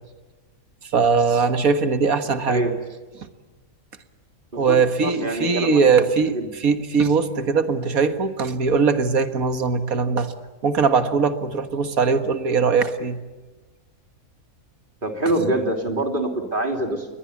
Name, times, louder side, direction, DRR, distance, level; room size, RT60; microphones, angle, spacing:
voice 1, 0.8-2.7 3.2-3.3 4.5-10.3 10.6-13.2, right 5 dB, 80° right, 9 dB, 2.0 m, -20 dB
voice 2, 4.5-6.1 6.3-6.5 15.0-17.1, right 1 dB, 35° right, 3 dB, 3.5 m, -25 dB
29.0 x 22.0 x 8.4 m, 1.2 s
omnidirectional pair, 1.5 m